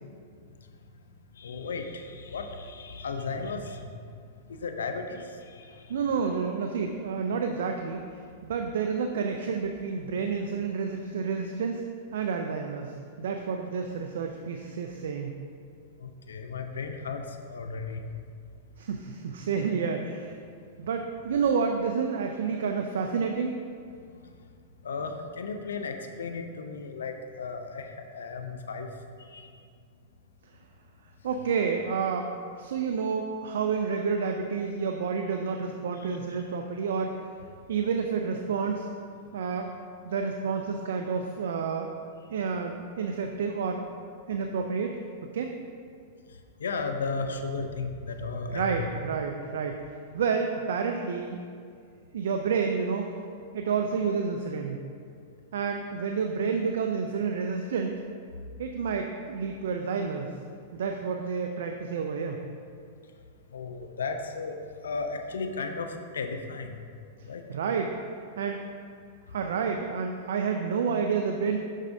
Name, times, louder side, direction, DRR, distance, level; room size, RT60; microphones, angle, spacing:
voice 1, 1.3-4.0 4.4-6.0 16.0-18.0 24.1-24.2 24.8-28.9 29.2-29.5 46.6-48.8 63.5-64.6 64.8-66.9 67.2-67.4, left 4 dB, 90° left, 6 dB, 0.6 m, -35 dB
voice 2, 5.9-8.0 8.4-11.8 12.1-15.3 18.8-20.4 20.8-23.6 31.2-32.3 32.6-37.1 37.7-38.9 39.3-39.7 40.0-41.9 42.3-43.8 44.3-45.0 45.3-45.5 48.5-49.8 50.1-51.4 52.1-53.1 53.5-54.8 55.5-58.0 58.6-60.3 60.7-62.4 67.5-67.9 68.4-68.6 69.3-71.6, right 5 dB, 75° right, 4 dB, 0.4 m, -29 dB
7.3 x 6.2 x 2.7 m, 2.2 s
hypercardioid pair, 120°, 0 cm